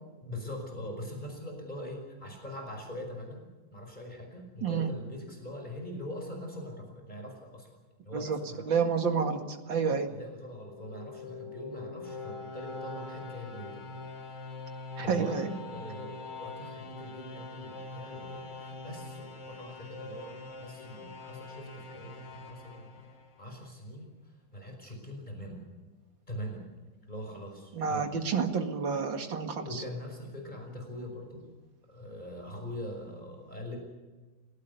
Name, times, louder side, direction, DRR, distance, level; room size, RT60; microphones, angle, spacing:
voice 1, 0.2-3.4 3.7-7.7 8.0-8.7 9.6-14.0 15.0-22.9 23.4-24.1 24.5-25.6 26.3-26.6 27.1-28.1 29.6-31.5 31.9-33.8, left 1 dB, 25° left, 2 dB, 5.5 m, -42 dB
voice 2, 8.7-9.4 9.7-10.1 15.0-15.5 27.7-29.8, right 6 dB, 85° right, 5 dB, 2.7 m, -29 dB
sound 1, 10.5-23.6, left 3 dB, 65° left, 2.8 m, -43 dB
29.0 x 17.0 x 6.9 m, 1.3 s
omnidirectional pair, 2.0 m